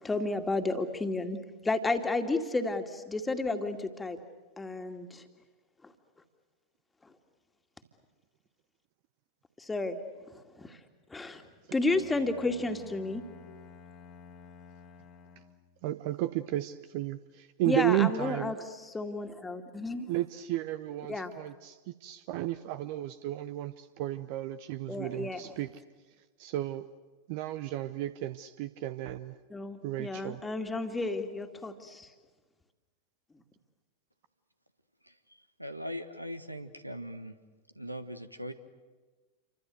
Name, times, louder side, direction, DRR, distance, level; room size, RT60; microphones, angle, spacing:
voice 1, 0.0-4.2 4.6-5.2 5.8-5.9 9.6-10.0 10.3-10.8 11.1-11.4 11.7-13.2 17.7-20.1 21.1-21.3 24.9-25.4 29.5-32.1, left 2 dB, 10° left, 6 dB, 2.3 m, -32 dB
Bowed string instrument, 11.9-15.8, left 5 dB, 30° left, 2.0 m, -52 dB
voice 2, 15.8-18.5 20.1-25.8 26.4-26.9 27.3-29.4 29.8-30.4, right 15 dB, 45° right, 13 dB, 0.8 m, -33 dB
voice 3, 35.6-37.3 37.7-38.5, equal, 90° right, 10 dB, 1.5 m, -40 dB
28.5 x 25.0 x 8.1 m, 1.3 s
figure-of-eight pair, 90°, 0 cm